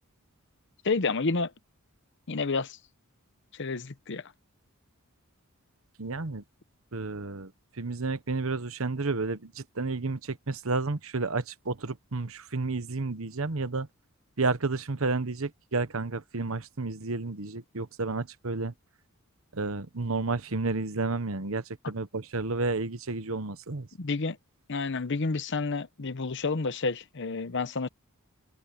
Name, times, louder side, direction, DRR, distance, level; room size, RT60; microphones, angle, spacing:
voice 1, 0.8-1.5 2.3-2.8 3.5-4.2 24.0-24.4 24.7-27.9, left 4 dB, 55° left, 0.9 m, -29 dB
voice 2, 6.0-6.4 6.9-7.5 7.8-13.9 14.4-18.7 19.5-23.9, right 3 dB, 65° right, 1.1 m, -31 dB
head